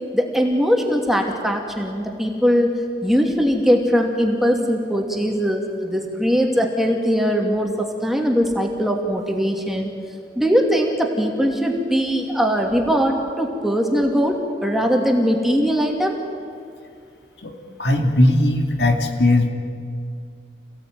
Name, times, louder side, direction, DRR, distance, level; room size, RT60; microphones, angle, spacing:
voice 1, 0.1-2.7 3.0-9.9 10.3-16.2, equal, ahead, 1 dB, 2.6 m, -20 dB
voice 2, 17.8-19.5, left 1 dB, 70° left, 4 dB, 2.6 m, -18 dB
28.0 x 17.0 x 9.5 m, 2.3 s
head